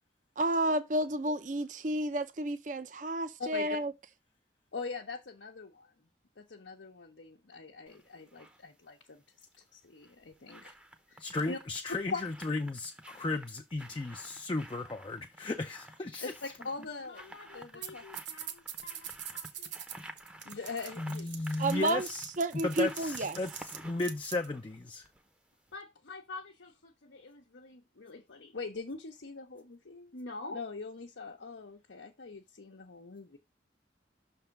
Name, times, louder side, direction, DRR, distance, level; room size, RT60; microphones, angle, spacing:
voice 1, 0.4-3.9 21.6-22.1 22.4-23.4, right 1 dB, 45° right, 0.6 m, -31 dB
voice 2, 4.7-5.9 6.4-9.2 9.7-10.8 11.1-11.6 12.1-12.2 16.2-19.7 20.4-21.3 25.7-33.4, left 4 dB, 85° left, 0.9 m, -43 dB
sound 1, 7.9-8.6 9.8-25.4 25.7-25.8, right 1 dB, 5° right, 0.7 m, -52 dB
voice 3, 11.2-16.3 21.0-22.3 22.6-25.1, left 2 dB, 25° left, 0.4 m, -35 dB
sound 2, 17.8-17.9 18.1-24.5, right 10 dB, 80° right, 1.0 m, -43 dB
6.3 x 3.4 x 5.8 m
head